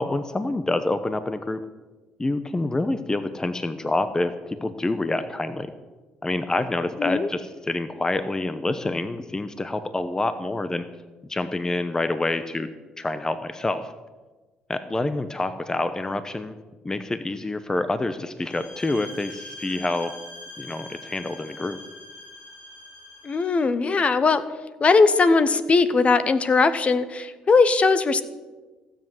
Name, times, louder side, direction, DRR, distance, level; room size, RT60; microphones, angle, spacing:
voice 1, 0.0-1.6 2.2-5.7 6.2-10.8 11.2-12.7 13.0-13.9 14.7-16.6 16.8-20.1 20.6-21.8, left 2 dB, 20° left, 11 dB, 0.9 m, -27 dB
sound 1, 18.4-23.6, left 1 dB, 65° left, 4.9 m, -43 dB
voice 2, 23.2-24.4 24.8-28.2, left 4 dB, 40° left, 13 dB, 1.0 m, -19 dB
16.0 x 7.5 x 7.9 m, 1.3 s
supercardioid pair, 75°, 3 cm